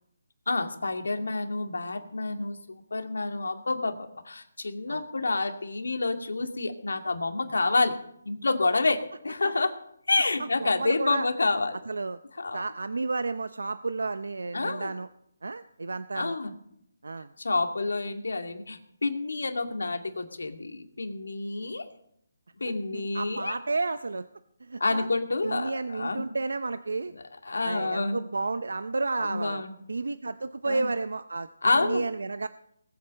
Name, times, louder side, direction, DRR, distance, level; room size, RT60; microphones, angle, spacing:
voice 1, 0.5-7.9 8.2-9.7 10.1-11.8 12.4-12.6 14.5-14.9 16.1-16.5 17.4-21.9 22.6-23.5 24.8-26.3 27.5-28.2 29.2-29.7 30.7-30.9 31.6-32.0, left 3 dB, 80° left, 6 dB, 2.4 m, -28 dB
voice 2, 10.6-11.3 11.9-12.2 12.5-15.1 15.4-16.4 17.0-17.3 22.9-24.3 24.6-25.1 25.4-27.1 27.6-29.6 29.9-31.5 31.7-32.5, right 3 dB, 80° right, 13 dB, 0.7 m, -31 dB
19.5 x 8.1 x 7.7 m, 0.73 s
hypercardioid pair, 165°, 0 cm